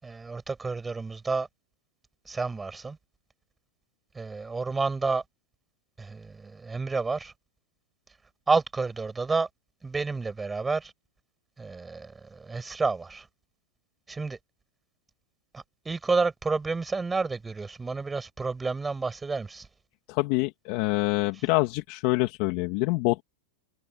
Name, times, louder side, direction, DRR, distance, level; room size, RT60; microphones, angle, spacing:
voice 1, 0.0-1.5 2.3-3.0 4.1-5.2 6.0-7.3 8.5-9.5 9.8-10.9 11.6-13.3 14.1-14.4 15.5-19.7, right 4 dB, 10° right, 6.0 m, -30 dB
voice 2, 20.1-23.2, left 23 dB, 50° left, 2.7 m, -26 dB
supercardioid pair, 145°, 0 cm